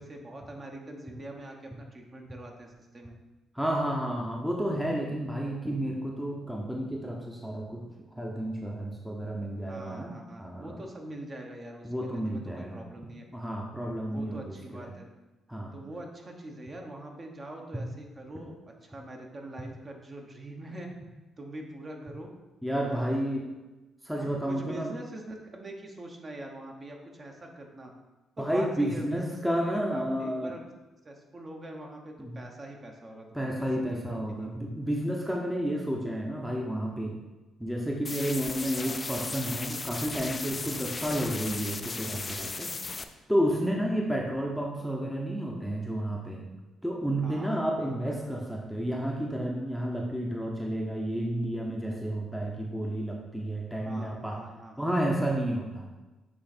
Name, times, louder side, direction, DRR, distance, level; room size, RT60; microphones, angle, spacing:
voice 1, 0.0-3.2 9.6-13.3 14.0-15.1 15.7-20.9 21.4-22.3 22.8-23.3 24.1-27.9 28.4-30.6 31.0-34.6 38.8-39.0 43.8-43.9 47.2-47.5 47.8-48.0 53.8-55.2, right 1 dB, 35° right, 1 dB, 1.1 m, -44 dB
voice 2, 3.5-7.8 8.2-10.1 10.4-10.8 11.8-12.8 13.3-14.9 15.5-15.8 22.6-23.4 24.0-24.9 28.4-30.5 32.2-32.4 33.3-37.2 37.6-42.7 43.3-46.4 46.8-54.4 54.8-55.9, equal, ahead, -1 dB, 0.8 m, -31 dB
sound 1, 38.0-43.0, left 3 dB, 30° left, 0.4 m, -36 dB
7.5 x 3.2 x 4.4 m, 1.1 s
cardioid pair, 90°, 0 cm